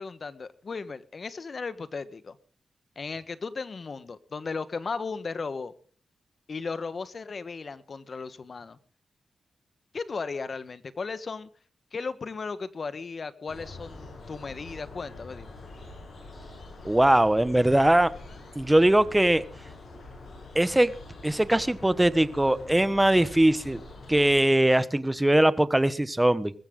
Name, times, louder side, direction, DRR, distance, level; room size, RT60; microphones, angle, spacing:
voice 1, 0.0-2.4 2.9-5.7 6.5-8.8 9.9-11.5 11.9-15.6, left 4 dB, 50° left, 1.4 m, -36 dB
sound 1, 13.5-24.4, left 2 dB, 65° left, 7.6 m, -45 dB
voice 2, 16.8-18.1 18.5-19.4 20.5-20.9 21.2-23.8 24.1-26.5, right 1 dB, 10° right, 1.2 m, -21 dB
21.0 x 15.0 x 3.9 m
cardioid pair, 75°, 0 cm